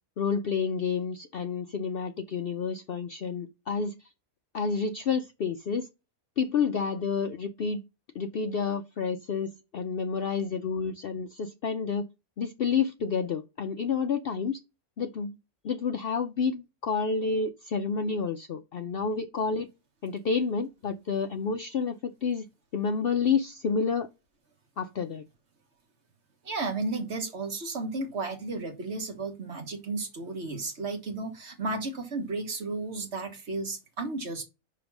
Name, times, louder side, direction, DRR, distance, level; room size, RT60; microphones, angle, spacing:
voice 1, 0.2-3.9 4.5-5.9 6.4-7.8 8.1-12.0 12.4-14.6 15.0-15.4 15.6-19.7 20.0-22.0 22.2-22.5 22.7-24.1 24.8-25.2, left 5 dB, 60° left, 0.6 m, -29 dB
voice 2, 26.4-34.4, right 3 dB, 50° right, 1.6 m, -33 dB
5.2 x 4.7 x 6.0 m
omnidirectional pair, 1.5 m